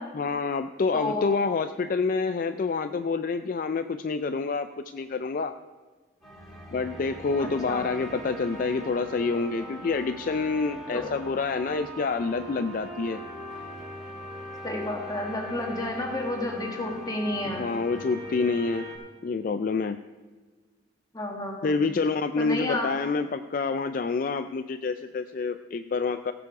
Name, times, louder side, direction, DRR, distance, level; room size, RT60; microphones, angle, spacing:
voice 1, 0.1-4.7 4.9-5.5 6.7-13.2 17.6-18.9 19.2-20.0 21.6-26.3, left 4 dB, 50° left, 9 dB, 0.4 m, -27 dB
voice 2, 0.9-1.3 7.4-7.9 10.9-11.1 14.6-17.7 21.1-21.8 22.4-22.9, left 1 dB, 20° left, 1 dB, 1.8 m, -31 dB
sound 1, 6.2-19.0, equal, ahead, 3.9 m, -40 dB
17.0 x 7.0 x 4.8 m, 1.4 s
head